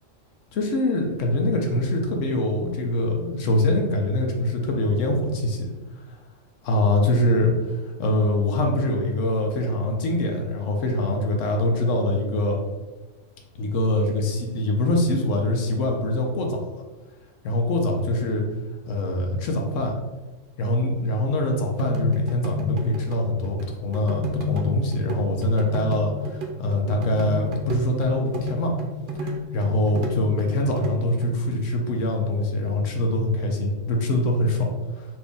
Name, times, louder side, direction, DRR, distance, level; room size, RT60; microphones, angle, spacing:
voice 1, 0.5-5.6 6.1-6.2 6.6-12.6 13.6-16.6 17.4-18.4 18.9-19.9 20.6-28.7 29.1-35.1, left 1 dB, 75° left, 2 dB, 1.0 m, -24 dB
sound 1, 21.8-31.4, left 2 dB, 55° right, 0.6 m, -31 dB
4.4 x 2.7 x 3.4 m, 1.2 s
omnidirectional pair, 1.3 m